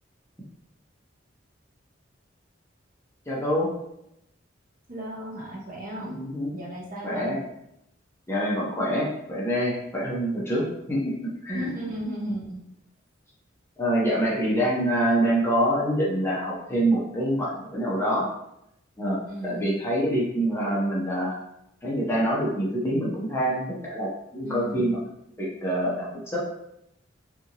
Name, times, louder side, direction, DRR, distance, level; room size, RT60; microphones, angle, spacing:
voice 1, 3.3-3.7 6.0-6.6 7.0-7.4 8.3-11.1 11.4-11.7 13.8-18.3 19.0-21.4 21.8-25.0 25.4-26.4, right 1 dB, 15° left, -5 dB, 0.6 m, -26 dB
voice 2, 4.9-6.2 6.5-7.4 11.5-12.6 19.2-19.7 24.4-25.0, right 1 dB, 45° right, -3 dB, 0.6 m, -35 dB
2.7 x 2.5 x 2.8 m, 0.81 s
head